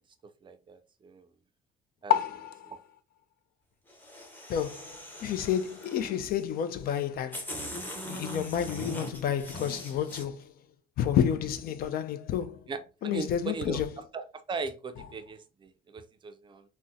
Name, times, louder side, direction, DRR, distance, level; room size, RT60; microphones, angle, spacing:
voice 1, 0.4-1.2 2.0-2.1 2.7-2.8 12.7-13.8 14.1-16.6, right 4 dB, 30° right, 0.4 m, -38 dB
voice 2, 2.1-2.7 4.5-7.4 8.1-10.4 11.0-12.6 13.0-13.9, left 9 dB, 60° left, 0.4 m, -30 dB
sound 1, 3.9-6.2 6.9-7.0 7.3-10.2, equal, 10° left, 0.8 m, -41 dB
3.6 x 2.1 x 2.6 m
cardioid pair, 110°, 17 cm